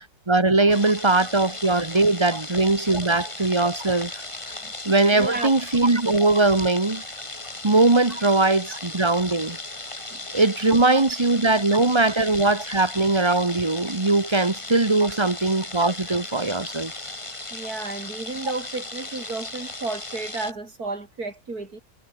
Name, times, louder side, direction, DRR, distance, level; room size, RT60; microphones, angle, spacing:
voice 1, 0.3-4.1 4.5-4.6 4.8-7.0 7.6-9.6 10.3-16.9, right 2 dB, 20° right, 1.4 m, -20 dB
sound 1, 0.7-20.5, left 2 dB, 20° left, 2.2 m, -36 dB
voice 2, 5.1-5.6 8.1-8.2 10.1-10.3 14.4-14.5 15.0-15.3 17.5-21.8, right 3 dB, 85° right, 4.9 m, -33 dB
omnidirectional pair, 1.6 m